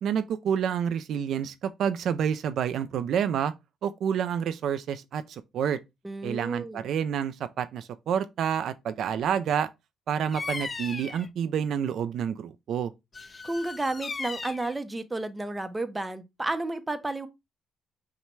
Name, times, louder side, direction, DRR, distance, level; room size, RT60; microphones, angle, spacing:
voice 1, 0.0-3.5 3.8-5.8 6.2-9.7 10.1-12.9, right 8 dB, 70° right, 0.3 m, -28 dB
voice 2, 6.0-6.9 13.4-17.3, right 2 dB, 15° right, 0.6 m, -32 dB
Bird vocalization bird call bird song, 10.3-11.3 13.1-14.7, left 4 dB, 35° left, 0.3 m, -37 dB
5.7 x 2.1 x 3.1 m
cardioid pair, 90°, 0 cm